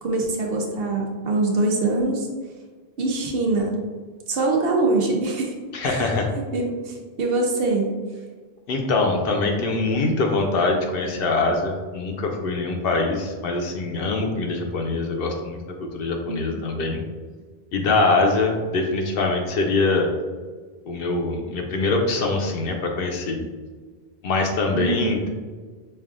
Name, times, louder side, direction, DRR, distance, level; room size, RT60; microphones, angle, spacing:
voice 1, 0.0-2.3 3.0-3.8 4.3-5.5 5.9-6.1 6.5-7.9 16.3-16.4 24.7-25.1, right 2 dB, 70° right, 1 dB, 0.9 m, -23 dB
voice 2, 5.7-6.3 8.7-17.0 17.7-20.1 20.9-23.4 24.2-25.3, left 3 dB, 65° left, 3 dB, 0.7 m, -23 dB
5.3 x 2.4 x 2.4 m, 1.4 s
omnidirectional pair, 1.1 m